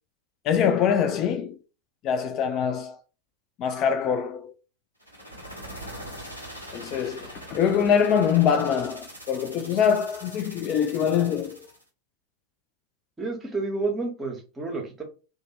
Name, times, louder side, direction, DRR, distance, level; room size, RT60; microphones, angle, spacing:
voice 1, 0.4-1.6 2.0-3.0 3.6-4.5 6.7-11.6, left 7 dB, 35° left, 0.3 m, -24 dB
sound 1, 5.0-11.8, equal, 90° left, 1.1 m, -42 dB
voice 2, 13.2-15.0, right 3 dB, 15° right, 1.0 m, -30 dB
2.5 x 2.3 x 2.9 m
figure-of-eight pair, 90°, 0 cm